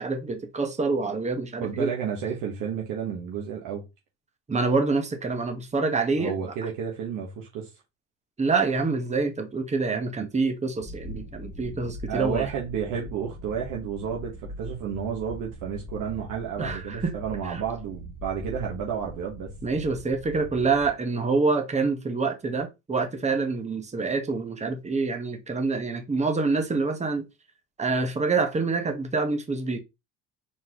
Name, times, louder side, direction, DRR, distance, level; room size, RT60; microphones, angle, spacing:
voice 1, 0.0-1.9 4.5-6.3 8.4-12.5 16.6-17.1 17.4-17.6 19.6-27.3 27.8-29.8, right 4 dB, 20° right, 1.1 m, -26 dB
voice 2, 1.6-3.8 6.2-7.7 12.1-19.5, right 7 dB, 75° right, 1.2 m, -31 dB
sound 1, 10.8-20.9, equal, 5° left, 1.1 m, -41 dB
4.3 x 4.0 x 2.9 m
supercardioid pair, 90°, 32 cm